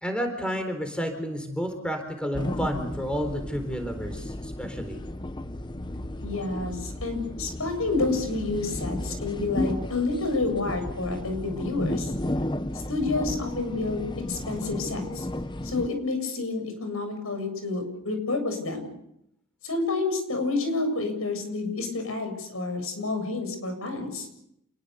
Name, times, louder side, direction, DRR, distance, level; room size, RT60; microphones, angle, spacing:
voice 1, 0.0-5.0, equal, 5° left, 6 dB, 4.1 m, -31 dB
sound 1, 2.3-15.9, left 1 dB, 20° left, 0.9 m, -33 dB
voice 2, 6.2-12.1 12.9-14.0 14.3-15.3 15.6-18.9 19.6-24.3, left 3 dB, 85° left, 7 dB, 7.6 m, -29 dB
28.5 x 21.5 x 7.0 m, 0.78 s
head